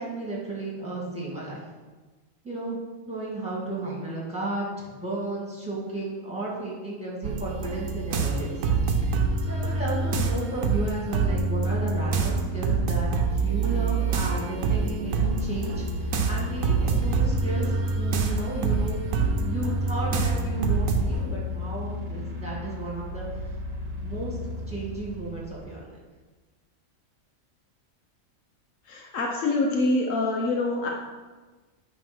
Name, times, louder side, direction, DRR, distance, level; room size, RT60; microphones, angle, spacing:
voice 1, 0.0-1.6 2.4-2.8 3.1-8.5 9.4-19.0 19.4-23.3 24.0-24.4 24.7-25.9, right 2 dB, 5° right, -5 dB, 2.1 m, -33 dB
sound 1, 7.2-21.3, right 4 dB, 85° right, 1.2 m, -26 dB
sound 2, 15.0-25.6, left 3 dB, 55° right, 1.2 m, -35 dB
voice 2, 28.9-30.9, left 2 dB, 75° left, 0 dB, 1.2 m, -25 dB
9.0 x 3.2 x 6.0 m, 1.3 s
omnidirectional pair, 1.4 m